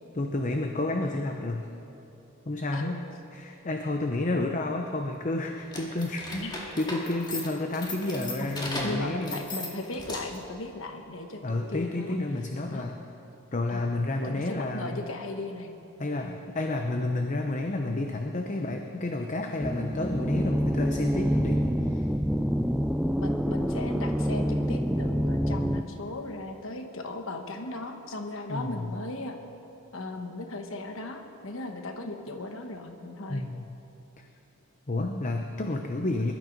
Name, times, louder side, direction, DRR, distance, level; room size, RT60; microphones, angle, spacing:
voice 1, 0.1-1.6 2.5-3.0 3.3-9.4 11.4-13.0 13.5-15.0 16.0-22.1 28.5-29.0 33.3-33.7 34.2-34.3 34.9-36.3, left 2 dB, 35° left, 3 dB, 0.8 m, -30 dB
sound 1, 5.6-10.5, left 1 dB, 20° left, 2.0 m, -37 dB
voice 2, 6.3-6.7 8.4-8.5 8.8-12.2 12.7-12.8 13.7-13.9 14.2-15.8 16.2-16.4 23.2-29.4 29.9-33.4 35.0-35.2, left 2 dB, 65° left, 4 dB, 1.2 m, -37 dB
sound 2, 19.6-25.8, equal, ahead, 0.4 m, -27 dB
21.5 x 12.5 x 5.2 m, 2.8 s
head